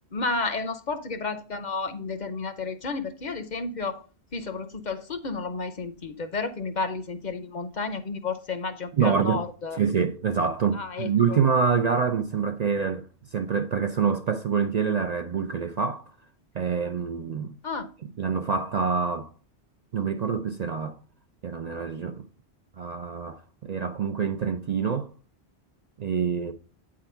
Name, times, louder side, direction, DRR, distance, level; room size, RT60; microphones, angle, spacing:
voice 1, 0.1-4.0 4.3-9.8 10.7-11.4 17.6-17.9, left 4 dB, 50° left, 0.8 m, -31 dB
voice 2, 8.9-9.4 9.7-13.0 13.3-16.1 16.5-17.5 18.2-19.3 19.9-21.0 21.4-22.3 22.8-25.1 26.0-26.5, right 6 dB, 50° right, 0.5 m, -26 dB
8.8 x 3.8 x 5.6 m
omnidirectional pair, 1.1 m